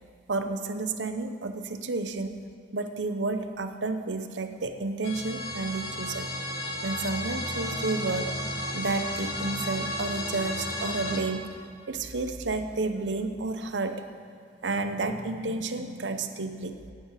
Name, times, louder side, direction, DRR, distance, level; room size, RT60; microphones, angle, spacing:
voice 1, 0.3-2.4 2.7-6.3 6.8-8.3 8.7-11.5 11.9-14.0 14.6-16.8, right 3 dB, 85° right, 8 dB, 0.8 m, -31 dB
sound 1, 5.0-11.2, left 1 dB, 75° left, 1.4 m, -33 dB
8.8 x 8.1 x 9.0 m, 2.3 s
head